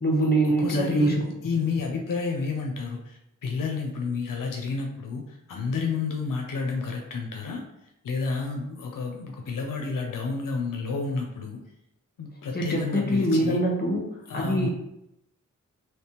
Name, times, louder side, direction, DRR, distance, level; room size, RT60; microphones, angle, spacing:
voice 1, 0.0-1.2 12.5-14.1 14.3-14.7, right 1 dB, 30° left, -1 dB, 1.0 m, -23 dB
voice 2, 0.6-7.6 8.0-11.6 12.2-13.6 14.3-14.7, left 4 dB, 85° left, 2 dB, 0.5 m, -30 dB
3.3 x 3.0 x 2.9 m, 0.84 s
wide cardioid pair, 60°, 32 cm